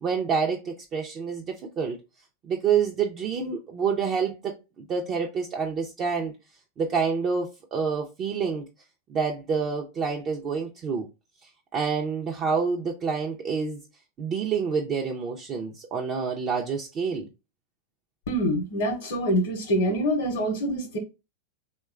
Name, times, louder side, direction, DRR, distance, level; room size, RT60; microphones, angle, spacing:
voice 1, 0.0-2.0 2.4-4.5 4.9-6.3 6.8-8.6 9.1-11.1 11.7-13.8 14.2-17.3, right 6 dB, 35° right, 0.4 m, -27 dB
voice 2, 18.3-21.0, equal, 65° left, 0.7 m, -25 dB
2.9 x 2.2 x 2.3 m
hypercardioid pair, 100°, 0 cm